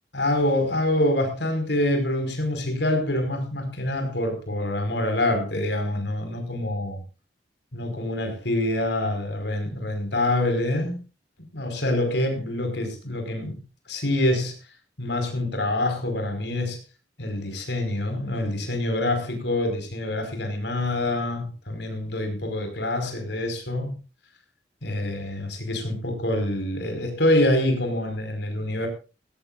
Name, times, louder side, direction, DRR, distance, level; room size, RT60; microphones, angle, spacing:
voice 1, 0.1-7.0 7.7-11.0 11.4-13.6 13.9-14.5 15.0-16.8 17.2-24.0 24.8-28.9, left 1 dB, 70° left, 5.0 m, -26 dB
19.0 x 16.5 x 2.5 m
head